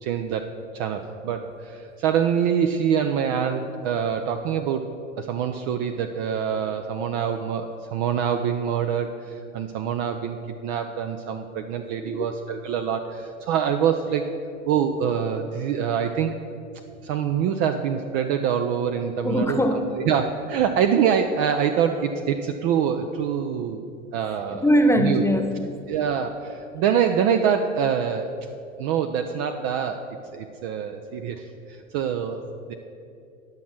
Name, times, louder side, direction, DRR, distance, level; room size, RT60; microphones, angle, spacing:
voice 1, 0.0-4.9 5.2-14.2 14.7-16.3 17.0-19.6 19.9-23.8 24.1-24.6 25.0-25.2 25.9-28.3 28.8-30.0 30.3-32.4 32.7-32.8, right 8 dB, 45° right, 6 dB, 0.6 m, -25 dB
voice 2, 19.2-19.9 24.6-25.8, equal, 5° left, 5 dB, 0.4 m, -21 dB
10.5 x 6.1 x 5.9 m, 2.6 s
figure-of-eight pair, 90°, 38 cm